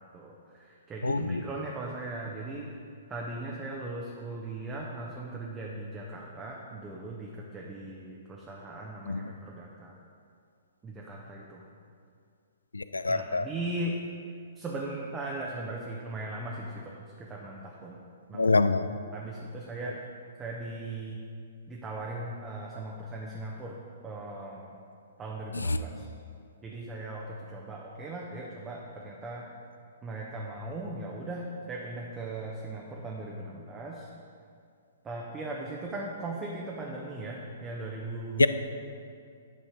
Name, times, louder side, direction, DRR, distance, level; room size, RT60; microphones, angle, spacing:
voice 1, 0.0-2.7 3.1-10.0 10.8-11.6 13.1-14.0 14.5-18.0 18.3-18.5 19.1-20.0 20.4-21.2 21.7-23.8 24.0-24.8 25.2-26.1 26.6-29.4 30.0-34.1 35.0-38.5, right 2 dB, 15° right, -3 dB, 0.8 m, -38 dB
voice 2, 1.0-1.4 9.1-9.3 12.7-13.4 18.3-18.9 25.5-25.8 38.4-38.5, left 3 dB, 75° left, 12 dB, 0.3 m, -25 dB
10.5 x 4.2 x 5.1 m, 2.3 s
figure-of-eight pair, 115°, 0 cm